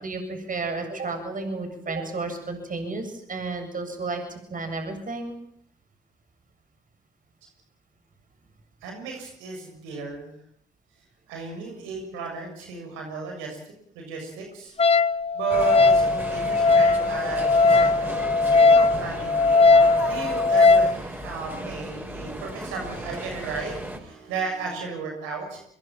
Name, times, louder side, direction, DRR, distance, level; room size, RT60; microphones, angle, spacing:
voice 1, 0.0-5.3, right 3 dB, 40° right, 7 dB, 7.5 m, -32 dB
voice 2, 8.8-10.3 11.3-13.6 13.9-14.7 15.3-18.1 18.4-19.5 19.7-25.6, right 5 dB, 85° right, 2 dB, 6.8 m, -34 dB
Wind instrument woodwind instrument, 14.8-21.0, left 3 dB, 30° left, 0.9 m, -19 dB
sound 1, 15.5-24.0, right 1 dB, 10° right, 7.3 m, -35 dB
23.5 x 22.5 x 7.6 m, 0.69 s
hypercardioid pair, 55°, 20 cm